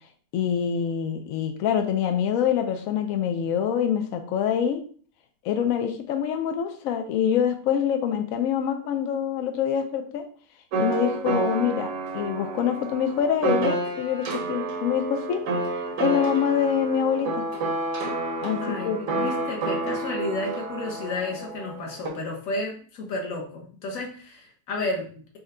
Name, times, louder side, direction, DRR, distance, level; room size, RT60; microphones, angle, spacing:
voice 1, 0.3-4.8 5.4-10.2 10.8-15.5 16.0-17.5 18.4-19.3, left 8 dB, 80° left, 6 dB, 0.7 m, -25 dB
sound 1, 10.7-22.1, right 3 dB, 60° right, 0.9 m, -29 dB
voice 2, 18.6-25.4, left 2 dB, 55° left, 0 dB, 1.2 m, -32 dB
4.4 x 2.1 x 3.6 m, 0.44 s
omnidirectional pair, 1.9 m